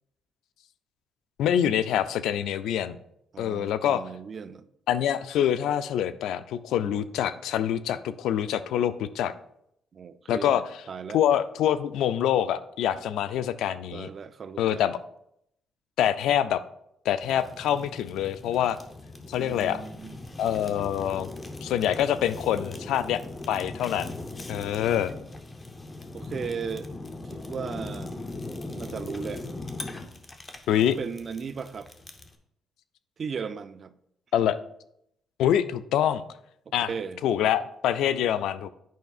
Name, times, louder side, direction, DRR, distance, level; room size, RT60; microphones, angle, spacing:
voice 1, 1.4-3.0 3.4-4.0 4.9-9.3 10.3-10.6 11.1-14.1 14.6-15.0 16.0-16.6 17.1-18.8 19.3-19.8 20.4-21.3 21.6-23.2 23.5-24.2 24.5-25.1 30.7-31.0 34.3-34.6 35.4-36.2 36.7-36.9 37.2-38.7, left 10 dB, 85° left, 0.4 m, -25 dB
voice 2, 3.3-4.7 9.9-11.2 13.9-14.6 19.4-20.2 26.1-26.9 27.3-28.2 28.7-29.4 31.0-31.9 33.2-33.9 36.7-37.2, right 6 dB, 45° right, 0.4 m, -36 dB
Fire, 17.2-32.4, left 2 dB, 25° left, 0.7 m, -40 dB
9.2 x 5.3 x 2.4 m
cardioid pair, 90°, 0 cm